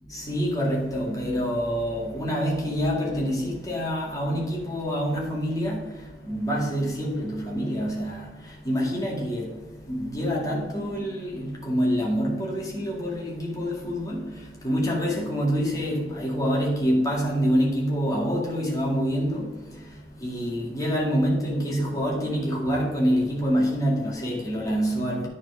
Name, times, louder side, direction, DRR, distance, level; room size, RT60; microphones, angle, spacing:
voice 1, 0.1-25.3, equal, 20° left, 2.0 m, -26 dB
10.0 x 4.3 x 4.7 m
head